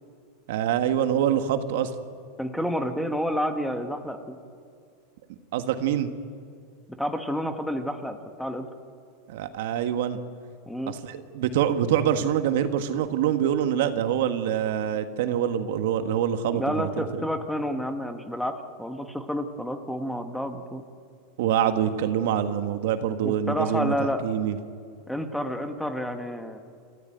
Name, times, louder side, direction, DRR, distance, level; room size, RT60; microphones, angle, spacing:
voice 1, 0.5-1.9 5.5-6.1 9.3-10.2 10.9-17.0 21.4-23.9 24.2-24.6, right 9 dB, 70° right, 8 dB, 1.7 m, -25 dB
voice 2, 2.4-4.4 6.9-8.7 10.7-11.0 16.5-20.8 23.2-24.2 25.1-26.6, equal, ahead, 6 dB, 1.4 m, -30 dB
28.5 x 15.0 x 9.2 m, 2.2 s
supercardioid pair, 145°, 0 cm